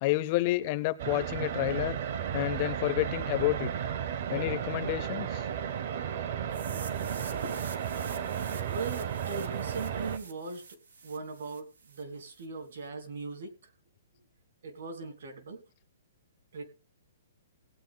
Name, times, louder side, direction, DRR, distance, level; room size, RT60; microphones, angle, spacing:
voice 1, 0.0-2.0 2.3-3.7 4.3-5.5, left 18 dB, 25° left, 14 dB, 0.5 m, -29 dB
sound 1, 1.0-10.2, right 9 dB, 40° right, 0.8 m, -34 dB
sound 2, 6.5-12.5, right 4 dB, 90° right, 2.6 m, -48 dB
voice 2, 6.7-7.6 8.7-10.8 11.0-13.7 14.6-15.6 16.5-16.6, right 4 dB, 60° right, 7 dB, 2.8 m, -40 dB
18.0 x 8.9 x 3.8 m, 0.34 s
hypercardioid pair, 175°, 0 cm